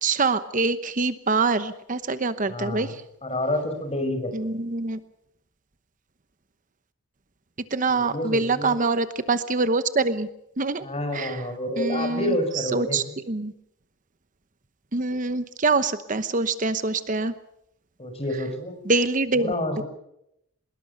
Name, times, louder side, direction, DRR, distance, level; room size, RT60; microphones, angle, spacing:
voice 1, 0.0-2.9 4.3-5.0 7.7-10.3 10.6-10.8 11.1-11.3 11.8-12.3 12.7-13.5 14.9-17.3 18.9-19.8, right 3 dB, 40° right, 12 dB, 1.0 m, -25 dB
voice 2, 2.5-3.0 3.2-4.6 7.9-8.8 10.8-13.0 18.0-18.8 19.3-19.8, left 1 dB, 30° left, 6 dB, 5.8 m, -29 dB
24.0 x 21.0 x 6.8 m, 0.78 s
head